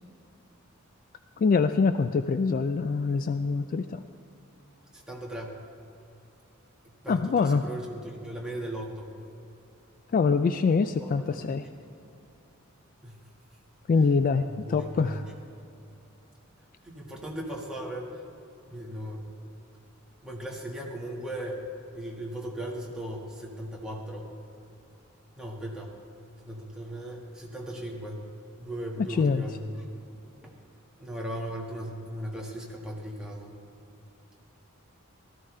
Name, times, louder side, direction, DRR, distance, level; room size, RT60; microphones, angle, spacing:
voice 1, 1.4-4.0 7.1-7.6 10.1-11.7 13.9-15.2 29.0-29.4, left 4 dB, 40° left, 10 dB, 0.3 m, -24 dB
voice 2, 5.1-5.6 7.0-9.1 11.0-11.1 11.4-11.5 13.0-13.2 14.5-15.2 16.8-18.1 18.6-19.2 20.2-21.6 21.9-24.3 25.4-25.9 26.4-28.2 28.6-30.0 30.4-30.5 31.0-33.6, right 1 dB, 5° right, -3 dB, 1.7 m, -37 dB
17.0 x 13.5 x 3.2 m, 2.8 s
head